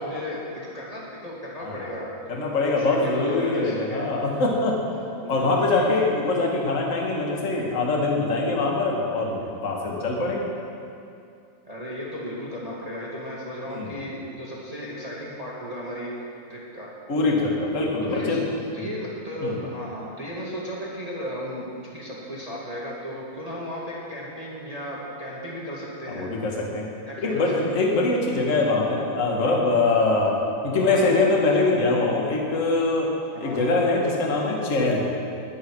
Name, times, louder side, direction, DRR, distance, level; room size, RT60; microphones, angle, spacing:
voice 1, 0.0-2.2 2.8-4.0 5.2-5.8 11.6-16.1 16.5-16.9 18.0-18.4 18.7-26.3 27.1-27.7 30.7-31.1 33.3-33.6, equal, 20° right, -5 dB, 0.9 m, -35 dB
voice 2, 2.3-4.8 5.3-10.5 13.7-13.9 17.1-18.4 18.8-18.9 19.4-19.6 26.1-26.9 27.2-30.4 30.6-33.1 33.4-35.0, left 3 dB, 35° left, -1 dB, 1.3 m, -23 dB
20.5 x 10.0 x 4.8 m, 2.5 s
omnidirectional pair, 4.4 m